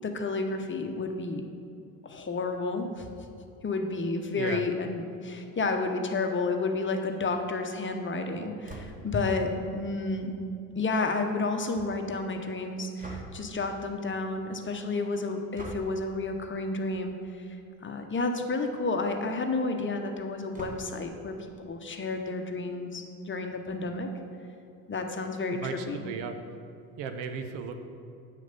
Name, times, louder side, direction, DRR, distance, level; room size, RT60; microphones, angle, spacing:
voice 1, 0.0-1.5 2.0-3.1 3.6-10.3 10.7-17.6 17.8-24.1 24.9-26.0, left 3 dB, 25° left, 5 dB, 1.0 m, -31 dB
sound 1, 8.6-9.2 13.0-13.6 15.5-16.0 17.2-17.5 17.9-18.0 18.2-18.3 20.5-21.1, right 1 dB, 20° right, 1.3 m, -43 dB
voice 2, 25.5-26.3 27.0-27.8, right 6 dB, 65° right, 7 dB, 0.9 m, -35 dB
8.6 x 6.3 x 5.4 m, 2.5 s
hypercardioid pair, 60°, 44 cm